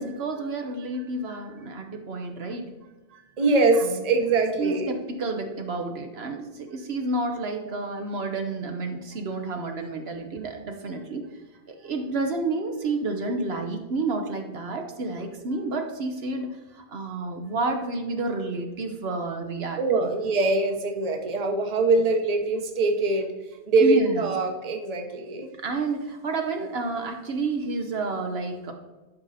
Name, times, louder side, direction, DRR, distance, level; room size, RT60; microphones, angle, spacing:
voice 1, 0.0-2.7 3.7-4.0 4.6-11.3 11.7-20.1 23.8-24.3 25.6-28.7, right 3 dB, 65° right, 4 dB, 1.1 m, -30 dB
voice 2, 3.1-5.0 19.8-25.5, right 3 dB, 35° right, 4 dB, 1.0 m, -23 dB
11.0 x 5.2 x 4.1 m, 1.2 s
omnidirectional pair, 1.1 m